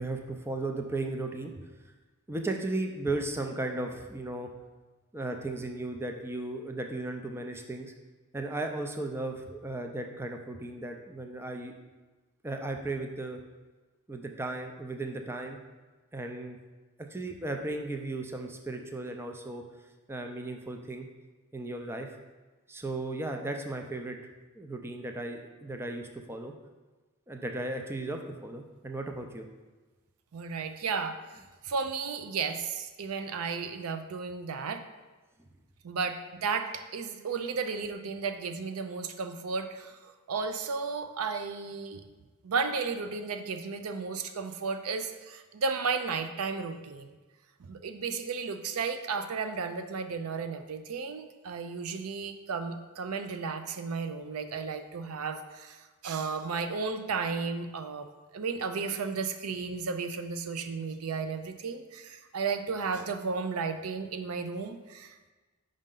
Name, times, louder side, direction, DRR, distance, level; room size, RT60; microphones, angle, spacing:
voice 1, 0.0-1.5 2.3-4.5 5.1-7.9 8.3-11.7 12.4-13.4 14.1-15.6 16.1-16.6 17.1-19.6 20.1-21.1 21.5-22.1 22.7-24.2 24.6-26.5 27.3-29.5, right 2 dB, 10° right, 4 dB, 0.4 m, -35 dB
voice 2, 30.3-31.2 31.6-34.8 35.8-42.0 42.4-47.1 47.7-55.8 56.0-58.1 58.3-65.3, right 5 dB, 80° right, 8 dB, 0.5 m, -34 dB
5.3 x 5.1 x 3.8 m, 1.2 s
head